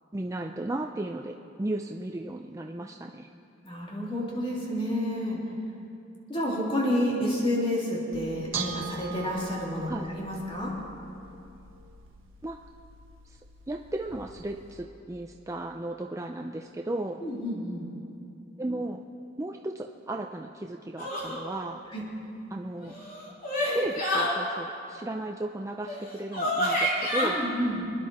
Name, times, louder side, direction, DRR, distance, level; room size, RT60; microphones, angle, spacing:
voice 1, 0.1-3.3 9.9-10.0 12.4-12.6 13.2-13.4 13.7-17.2 18.6-19.1 19.4-21.8 22.5-22.9 23.7-27.4, right 1 dB, 15° right, 3 dB, 0.4 m, -35 dB
voice 2, 3.6-5.4 6.3-10.7 17.2-17.8 21.9-22.0 27.2-27.9, equal, 30° left, -4 dB, 3.2 m, -29 dB
Bell / Dishes pots and pans, 8.1-14.8, right 6 dB, 85° right, 1.3 m, -42 dB
sound 1, 21.0-21.4 22.8-24.3 25.9-26.0 26.3-27.3, left 1 dB, 45° left, 3.1 m, -28 dB
26.5 x 10.5 x 4.3 m, 2.7 s
head